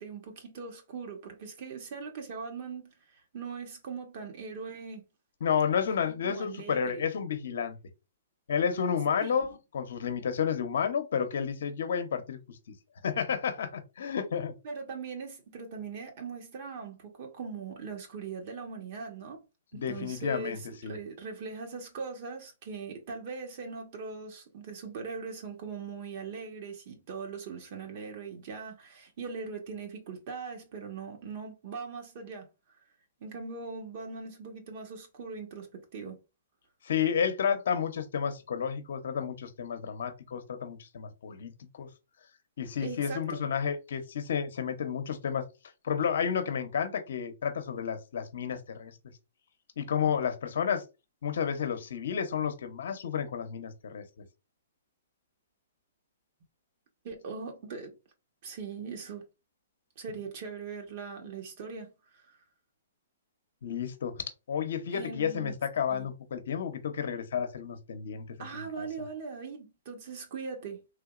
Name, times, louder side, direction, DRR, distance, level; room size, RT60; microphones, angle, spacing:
voice 1, 0.0-2.9 3.3-5.0 6.0-7.0 9.2-9.4 14.6-19.4 19.7-32.5 33.2-36.2 42.8-43.4 57.0-57.9 58.4-59.2 60.0-62.4 64.9-65.5 65.9-66.1 68.4-70.8, right 5 dB, 50° right, 1.1 m, -40 dB
voice 2, 5.4-7.8 8.5-12.7 13.0-14.5 19.7-21.0 36.8-41.9 42.6-45.5 45.8-49.0 49.8-50.8 51.2-54.3 63.6-68.9, left 7 dB, 70° left, 0.7 m, -31 dB
3.4 x 2.8 x 2.4 m
hypercardioid pair, 135°, 0 cm